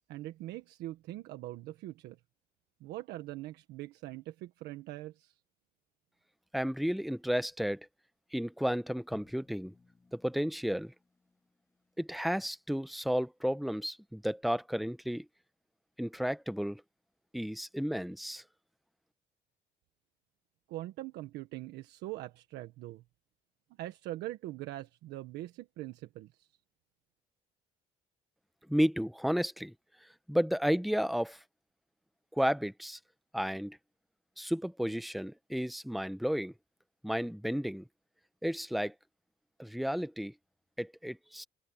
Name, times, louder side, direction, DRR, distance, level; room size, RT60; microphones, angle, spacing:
voice 1, 0.1-2.2 2.8-5.3 20.7-23.0 23.8-26.5, right 16 dB, 85° right, 1.4 m, -42 dB
voice 2, 6.5-7.9 8.3-9.7 10.1-10.9 12.0-15.2 16.0-16.8 17.3-18.4 28.7-29.7 30.3-31.4 32.3-33.0 33.3-33.8 34.4-36.5 37.0-37.9 38.4-38.9 39.6-40.3 40.8-41.4, equal, ahead, 0.9 m, -32 dB
Drum, 9.1-12.1, left 3 dB, 15° left, 2.1 m, -59 dB
open air
cardioid pair, 110°, 17 cm